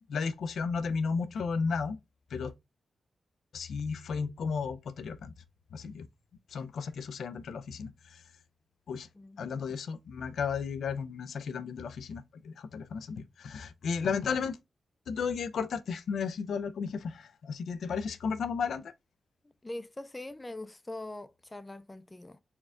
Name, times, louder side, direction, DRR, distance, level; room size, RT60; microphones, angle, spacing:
voice 1, 0.1-2.0 2.3-2.5 3.5-5.3 5.7-6.1 6.5-8.2 8.9-9.1 9.4-14.6 15.1-18.9, left 5 dB, 80° left, 0.4 m, -34 dB
voice 2, 19.4-22.4, left 2 dB, 20° left, 0.4 m, -42 dB
4.3 x 2.3 x 3.5 m
cardioid pair, 65°, 0 cm